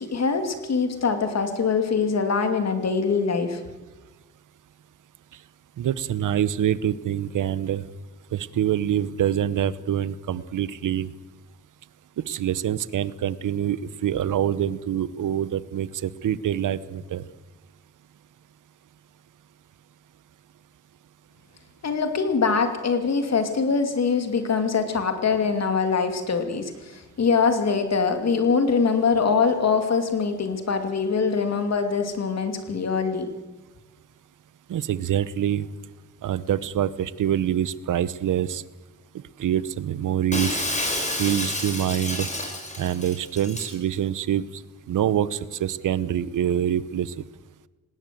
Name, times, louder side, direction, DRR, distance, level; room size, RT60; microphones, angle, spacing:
voice 1, 0.0-3.6 21.8-33.3, left 5 dB, 55° left, 7 dB, 2.7 m, -23 dB
voice 2, 5.8-7.9 8.3-11.1 12.3-17.2 34.7-35.7 36.2-38.6 39.4-40.6 41.2-42.3 42.8-44.6 44.9-47.1, right 10 dB, 75° right, 17 dB, 0.9 m, -25 dB
Shatter, 40.3-43.7, left 1 dB, 20° left, 5.2 m, -29 dB
19.5 x 17.5 x 7.7 m, 1.2 s
cardioid pair, 80°, 31 cm